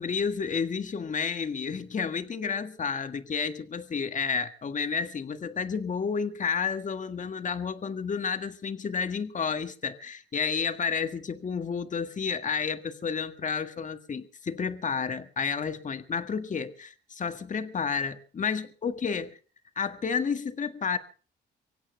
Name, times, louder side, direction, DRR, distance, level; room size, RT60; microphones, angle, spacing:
voice 1, 0.0-19.3 19.8-21.0, left 6 dB, 40° left, 1.8 m, -31 dB
24.5 x 8.6 x 6.8 m
cardioid pair, 90°, 20 cm